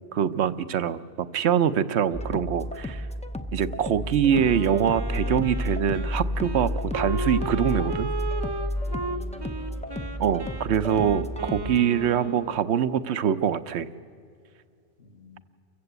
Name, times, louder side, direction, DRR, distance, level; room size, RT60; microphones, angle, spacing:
voice 1, 0.1-1.0 1.3-3.1 3.5-8.1 10.2-13.9, right 8 dB, 70° right, 14 dB, 1.0 m, -24 dB
sound 1, 2.1-11.8, left 1 dB, 5° left, 0.6 m, -31 dB
Wind instrument woodwind instrument, 4.3-12.7, right 2 dB, 25° right, 0.7 m, -35 dB
Wind instrument woodwind instrument 2, 6.3-11.5, equal, 80° left, 4.8 m, -51 dB
voice 2, 8.9-9.9 15.0-15.4, left 6 dB, 55° left, 6 dB, 1.7 m, -48 dB
29.0 x 15.5 x 8.1 m, 2.3 s
omnidirectional pair, 1.2 m